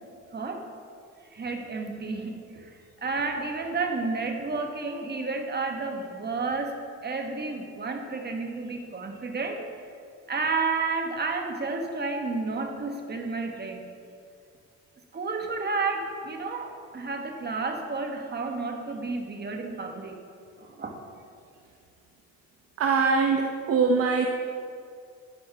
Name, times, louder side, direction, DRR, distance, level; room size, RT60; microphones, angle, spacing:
voice 1, 0.3-0.6 1.3-2.7 3.0-6.7 7.0-9.6 10.3-13.8 15.1-20.2 20.6-20.9, right 3 dB, 35° right, 3 dB, 1.4 m, -31 dB
voice 2, 22.8-24.3, right 5 dB, 50° right, 2 dB, 0.8 m, -23 dB
11.0 x 10.0 x 3.5 m, 2.3 s
cardioid pair, 90°, 30 cm